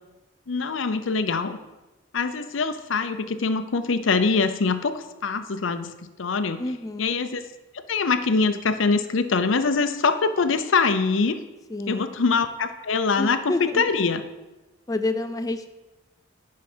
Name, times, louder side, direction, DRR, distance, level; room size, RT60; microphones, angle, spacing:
voice 1, 0.5-1.6 2.1-5.9 6.2-6.6 7.0-7.4 7.9-11.4 11.9-13.4 13.7-14.2, left 4 dB, 85° left, 11 dB, 0.7 m, -23 dB
voice 2, 6.6-7.1 11.7-12.1 13.2-13.8 14.9-15.7, left 2 dB, 20° left, 8 dB, 0.4 m, -29 dB
10.5 x 4.8 x 6.1 m, 1.1 s
head